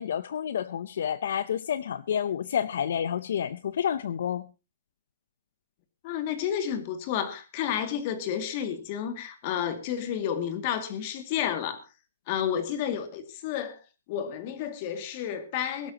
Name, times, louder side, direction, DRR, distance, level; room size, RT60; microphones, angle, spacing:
voice 1, 0.0-4.5, left 8 dB, 60° left, 0.6 m, -29 dB
voice 2, 6.0-11.8 12.3-13.8 14.1-15.9, left 9 dB, 30° left, 2.2 m, -31 dB
22.0 x 12.5 x 2.9 m
hypercardioid pair, 165°, 0 cm